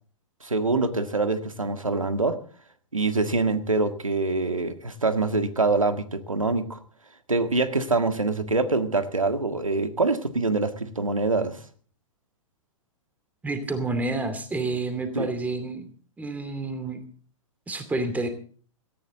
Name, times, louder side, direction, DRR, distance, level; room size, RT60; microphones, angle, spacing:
voice 1, 0.4-2.4 2.9-6.8 7.3-11.6 15.1-15.3, right 3 dB, 90° right, 9 dB, 1.7 m, -25 dB
voice 2, 13.4-15.9 16.2-17.0 17.7-18.3, right 2 dB, 10° right, 9 dB, 2.5 m, -29 dB
17.5 x 14.0 x 3.8 m, 0.43 s
figure-of-eight pair, 110°, 17 cm